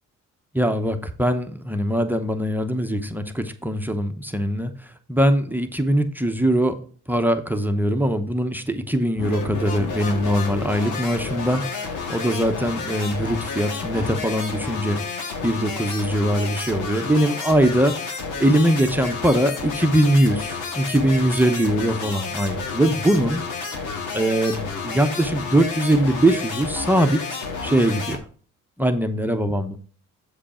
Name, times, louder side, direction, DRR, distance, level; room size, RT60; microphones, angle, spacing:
voice 1, 0.5-6.8 7.1-18.0 18.4-23.4 24.1-28.2 28.8-29.8, right 1 dB, 5° right, 6 dB, 0.9 m, -22 dB
sound 1, 9.2-28.2, left 4 dB, 85° left, 1.8 m, -31 dB
7.7 x 5.0 x 4.3 m, 0.42 s
cardioid pair, 90°, 30 cm